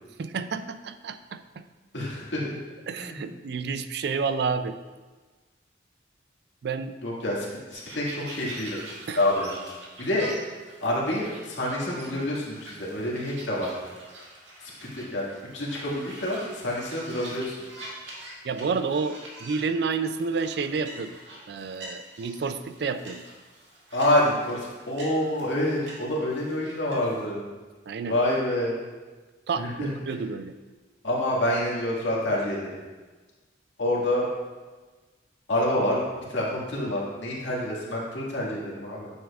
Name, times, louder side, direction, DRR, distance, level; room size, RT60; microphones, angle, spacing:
voice 1, 0.2-1.7 2.9-4.8 6.6-7.0 9.1-9.2 18.4-21.2 21.5-23.2 27.9-28.2 29.5-30.5, right 5 dB, 60° right, 10 dB, 0.4 m, -30 dB
voice 2, 1.9-2.6 3.0-3.2 7.0-8.8 9.1-9.6 10.0-10.3 10.8-13.7 14.6-15.3 15.5-17.6 23.9-27.5 28.1-28.8 29.6-30.2 31.0-32.7 33.8-34.3 35.5-36.0 36.3-39.1, left 1 dB, 75° left, -5 dB, 2.0 m, -27 dB
sound 1, 7.7-27.2, right 1 dB, 80° right, 1.9 m, -45 dB
9.3 x 7.1 x 2.4 m, 1.3 s
head